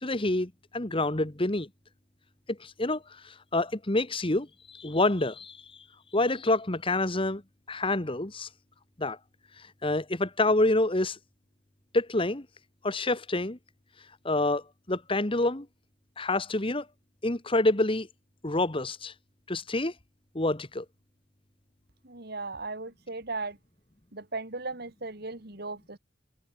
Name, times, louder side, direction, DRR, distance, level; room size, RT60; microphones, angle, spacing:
voice 1, 0.0-1.7 2.5-5.6 6.1-7.4 7.7-8.5 9.0-9.2 9.8-11.2 11.9-12.5 12.8-13.6 14.2-15.7 16.2-16.9 17.2-18.1 18.4-19.1 19.5-19.9 20.3-20.8, left 2 dB, 30° left, 1.6 m, -27 dB
voice 2, 22.0-23.6 24.1-26.0, right 3 dB, 55° right, 2.8 m, -37 dB
head